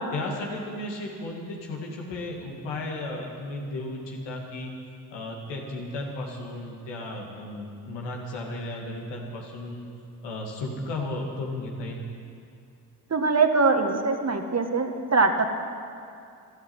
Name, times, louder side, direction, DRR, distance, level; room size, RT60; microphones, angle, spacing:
voice 1, 0.1-4.7 5.1-9.9 10.2-12.1, left 2 dB, 85° left, -1 dB, 2.4 m, -34 dB
voice 2, 13.1-15.5, right 4 dB, 40° right, 5 dB, 1.7 m, -22 dB
12.5 x 12.0 x 8.9 m, 2.4 s
hypercardioid pair, 45°, 42 cm